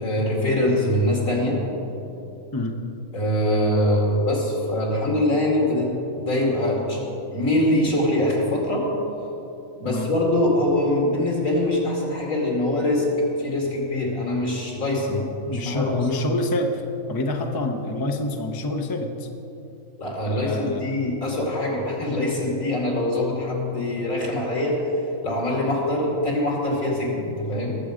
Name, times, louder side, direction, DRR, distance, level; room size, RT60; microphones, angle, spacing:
voice 1, 0.0-1.6 3.1-7.0 7.3-8.9 9.8-13.1 13.4-15.2 15.5-15.9 20.0-24.8 25.2-27.7, left 1 dB, 70° left, -2 dB, 3.0 m, -23 dB
voice 2, 15.0-19.3 20.3-20.8, left 2 dB, 20° left, 3 dB, 0.7 m, -27 dB
20.0 x 7.7 x 5.1 m, 2.9 s
omnidirectional pair, 1.4 m